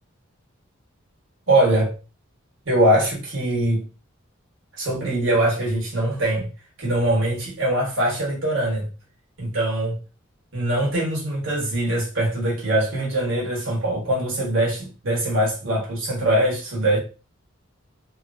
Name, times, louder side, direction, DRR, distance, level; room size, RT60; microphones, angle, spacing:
voice 1, 1.5-1.9 2.6-3.9 4.8-6.5 6.8-8.9 9.4-10.0 10.5-17.0, right 1 dB, 65° right, 1.3 m, -22 dB
2.9 x 2.6 x 2.2 m
head